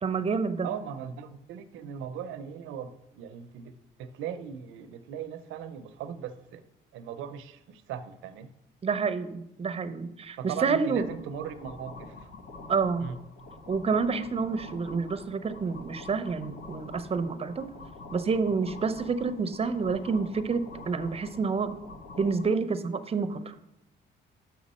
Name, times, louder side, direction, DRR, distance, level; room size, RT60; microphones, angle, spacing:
voice 1, 0.0-0.7 8.8-11.1 12.7-13.1 13.7-17.7 18.1-21.8 22.2-23.5, right 5 dB, 30° right, 11 dB, 0.6 m, -28 dB
voice 2, 0.6-6.6 6.9-8.5 10.4-12.3 13.0-13.2, right 8 dB, 90° right, 11 dB, 0.6 m, -39 dB
sound 1, 10.9-22.4, left 2 dB, 70° left, 1.3 m, -46 dB
6.2 x 5.8 x 4.2 m, 0.83 s
cardioid pair, 90°, 20 cm